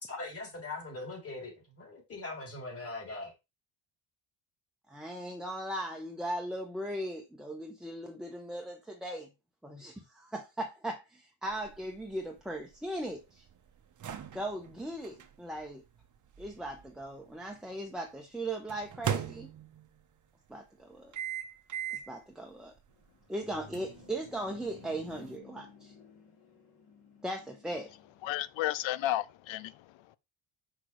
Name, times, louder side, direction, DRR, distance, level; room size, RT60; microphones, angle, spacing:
voice 1, 0.0-3.3, left 2 dB, 30° left, 3.1 m, -41 dB
voice 2, 4.9-9.3 9.6-13.4 14.3-15.8 16.4-19.5 20.5-21.1 22.1-22.7 23.3-25.9 27.2-27.9, right 1 dB, ahead, 0.9 m, -38 dB
sound 1, 11.5-17.6 18.7-20.0 21.1-22.2 22.7-22.8 23.7-25.4, right 9 dB, 40° right, 0.9 m, -40 dB
sound 2, 22.9-28.5, left 6 dB, 55° left, 3.1 m, -56 dB
voice 3, 28.2-30.2, left 14 dB, 75° left, 0.7 m, -33 dB
6.3 x 6.1 x 3.2 m
cardioid pair, 145°, 46 cm